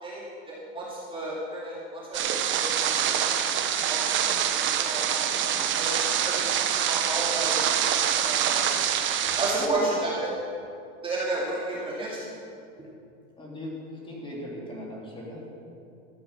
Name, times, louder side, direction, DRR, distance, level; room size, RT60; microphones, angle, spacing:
voice 1, 0.0-2.9 3.2-3.4 3.9-4.0 4.3-4.4 4.8-5.0 5.8-6.5 6.9-7.6 8.2-8.8 9.4-10.3 11.0-12.2, right 2 dB, 15° right, -6 dB, 2.4 m, -32 dB
sound 1, 2.1-9.7, right 9 dB, 30° right, 1.0 m, -25 dB
voice 2, 9.5-10.1 11.7-11.8 13.4-15.4, left 1 dB, 15° left, -3 dB, 3.3 m, -39 dB
14.0 x 8.3 x 7.3 m, 2.5 s
supercardioid pair, 135°, 38 cm